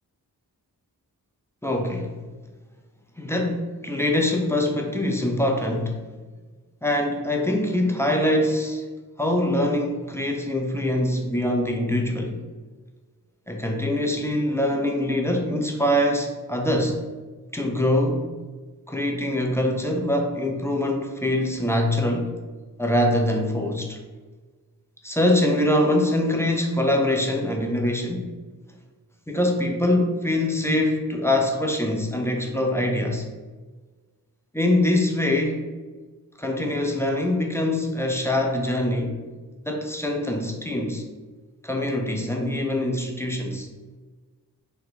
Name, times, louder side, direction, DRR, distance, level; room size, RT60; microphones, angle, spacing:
voice 1, 1.6-2.2 3.2-6.0 6.8-8.8 9.2-12.4 13.5-17.0 17.5-18.3 18.9-22.3 22.8-24.0 25.0-28.3 29.3-33.2 34.5-35.7 36.4-39.1 39.6-41.0 41.6-43.7, left 1 dB, 5° left, 1 dB, 0.5 m, -23 dB
3.8 x 2.2 x 4.5 m, 1.3 s
cardioid pair, 60°, 39 cm